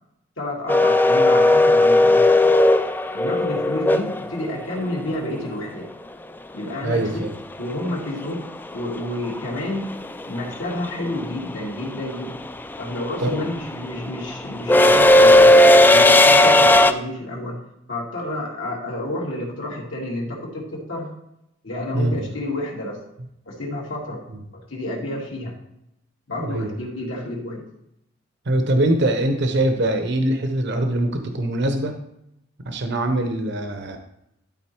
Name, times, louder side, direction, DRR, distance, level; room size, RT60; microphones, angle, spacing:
voice 1, 0.4-2.5 3.1-5.8 6.5-7.1 7.6-9.9 10.2-12.4 12.8-15.5 15.9-17.6 17.9-21.1 21.6-23.0 23.5-24.2 24.7-25.5 26.3-27.6, left 1 dB, 75° left, -4 dB, 2.3 m, -30 dB
sound 1, 0.7-4.7 7.2-7.3 8.6-8.9 9.1-16.9, left 1 dB, 10° left, 0.3 m, -15 dB
voice 2, 6.8-7.3 13.2-13.5 21.9-22.2 24.3-24.4 26.4-26.7 28.5-31.9 32.7-34.0, right 1 dB, 60° right, 6 dB, 0.9 m, -22 dB
11.5 x 4.0 x 4.5 m, 0.80 s
head